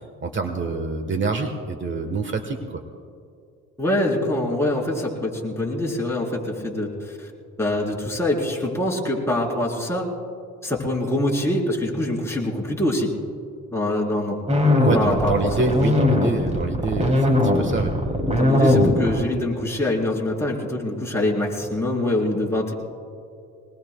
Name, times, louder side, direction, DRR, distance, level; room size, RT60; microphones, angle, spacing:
voice 1, 0.2-2.8 14.7-17.9 18.6-18.7, right 3 dB, 40° right, 5 dB, 1.3 m, -26 dB
voice 2, 3.8-7.3 7.6-10.1 10.6-13.1 13.7-14.4 14.9-15.5 18.2-22.7, left 1 dB, 10° left, -3 dB, 3.9 m, -24 dB
sound 1, 14.5-19.4, left 1 dB, 20° right, 3.1 m, -20 dB
23.0 x 20.0 x 2.3 m, 2.4 s
cardioid pair, 90°, 30 cm